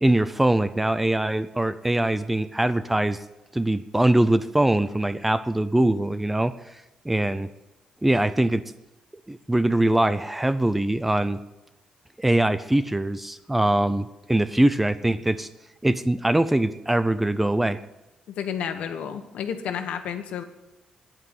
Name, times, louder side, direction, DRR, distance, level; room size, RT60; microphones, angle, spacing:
voice 1, 0.0-3.2 3.5-6.5 7.0-7.5 8.0-8.6 9.3-11.4 12.2-15.5 15.8-17.8, right 1 dB, 5° right, 14 dB, 0.4 m, -22 dB
voice 2, 18.3-20.4, left 8 dB, 75° left, 8 dB, 1.3 m, -31 dB
9.8 x 8.9 x 9.4 m, 0.99 s
cardioid pair, 165°, 2 cm